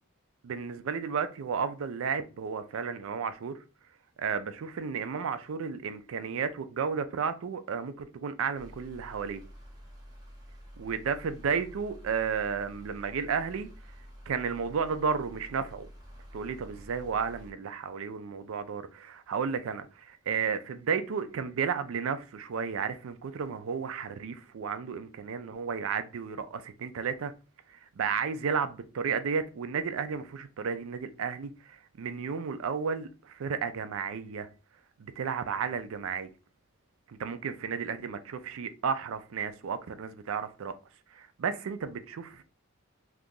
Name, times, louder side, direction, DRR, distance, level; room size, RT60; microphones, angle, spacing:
voice 1, 0.4-3.6 4.2-9.4 10.8-13.7 14.3-15.9 16.3-27.3 27.7-34.5 35.0-36.3 37.1-40.7 41.1-42.4, right 6 dB, 70° right, 0.4 m, -33 dB
sound 1, 8.5-17.5, equal, 20° right, 0.9 m, -49 dB
2.7 x 2.4 x 3.7 m
head